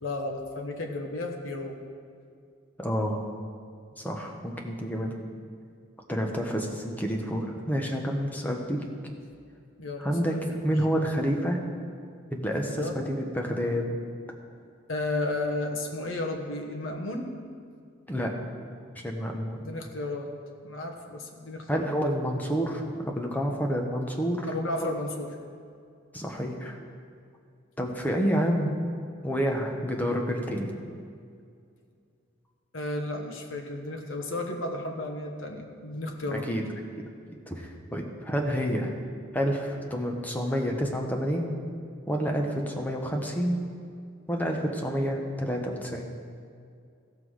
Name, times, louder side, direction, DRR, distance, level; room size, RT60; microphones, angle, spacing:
voice 1, 0.0-1.8 9.8-10.6 12.7-13.0 14.9-17.3 19.6-20.3 20.6-21.9 24.5-25.3 32.7-36.5, left 2 dB, 75° left, 2 dB, 1.1 m, -33 dB
voice 2, 2.8-3.2 4.0-5.1 6.1-8.8 10.0-10.4 10.6-11.6 12.3-13.9 18.1-18.3 19.0-19.7 21.7-24.5 24.8-24.9 26.1-26.8 27.8-28.7 29.2-30.7 36.3-36.6 37.5-39.0 39.3-41.6 42.1-43.6 44.3-46.1, equal, 10° left, 1 dB, 1.0 m, -29 dB
15.5 x 6.0 x 4.8 m, 2.3 s
head